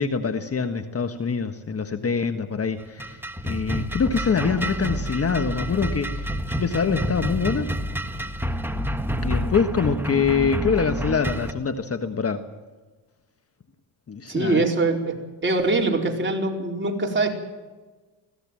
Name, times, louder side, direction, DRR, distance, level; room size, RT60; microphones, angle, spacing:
voice 1, 0.0-6.3 6.6-7.7 9.2-12.4 14.1-14.6, left 5 dB, 30° left, 8 dB, 1.5 m, -24 dB
sound 1, 2.8-11.5, equal, 5° right, 1.7 m, -28 dB
voice 2, 14.3-15.2 15.4-17.4, right 3 dB, 25° right, 1 dB, 4.6 m, -23 dB
21.5 x 17.0 x 7.6 m, 1.3 s
supercardioid pair, 85°, 46 cm